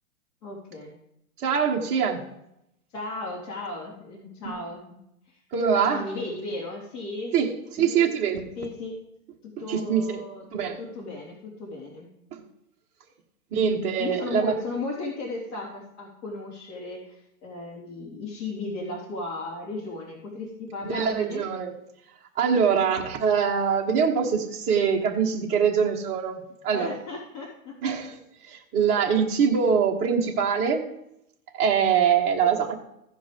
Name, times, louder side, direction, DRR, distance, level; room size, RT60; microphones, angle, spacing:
voice 1, 0.4-0.9 2.9-5.0 5.3-5.4 5.8-7.3 7.8-8.1 8.6-8.9 9.4-12.1 13.5-21.5 22.5-22.6 26.7-27.7, left 2 dB, 55° left, -5 dB, 3.5 m, -35 dB
voice 2, 1.4-2.2 4.4-4.5 5.5-6.0 7.3-8.4 9.7-10.2 10.5-10.8 12.3-12.4 13.5-14.5 20.8-21.7 22.3-26.9 27.8-28.2 28.4-30.8 31.5-32.7, right 7 dB, 15° right, -1 dB, 1.1 m, -23 dB
15.5 x 5.2 x 5.1 m, 0.80 s
hypercardioid pair, 165°, 44 cm